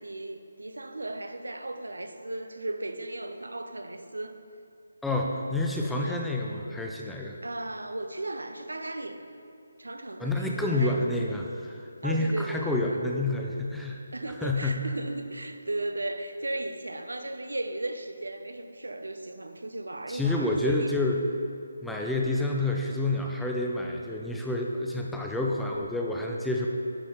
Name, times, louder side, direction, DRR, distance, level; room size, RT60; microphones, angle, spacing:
voice 1, 0.0-4.4 6.0-6.2 7.4-9.2 9.8-11.0 12.0-13.0 14.1-21.0, right 2 dB, 70° right, 7 dB, 0.7 m, -36 dB
voice 2, 5.0-7.4 10.2-14.0 14.4-14.9 20.1-21.2 21.8-26.7, left 2 dB, ahead, -1 dB, 0.4 m, -28 dB
11.0 x 5.7 x 3.8 m, 2.5 s
figure-of-eight pair, 150°, 0 cm